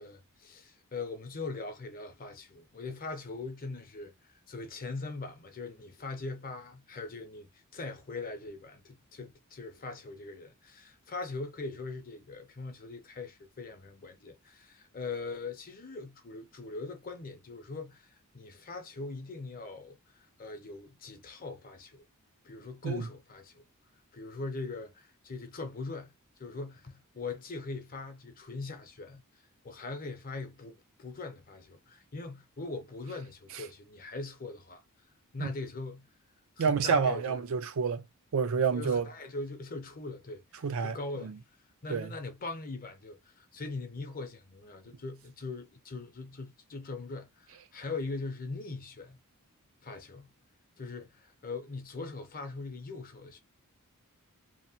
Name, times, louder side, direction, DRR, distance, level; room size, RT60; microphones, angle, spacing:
voice 1, 0.0-22.1 22.4-23.6 24.1-26.1 26.4-34.8 35.3-36.1 36.6-37.4 38.7-41.3 41.8-49.2 49.8-50.3 50.8-53.4, left 3 dB, 40° left, 0.7 m, -41 dB
voice 2, 36.6-38.1 38.3-39.1 40.6-41.0 41.2-41.4 41.9-42.1, right 5 dB, 65° right, 0.4 m, -28 dB
2.8 x 2.1 x 2.8 m
head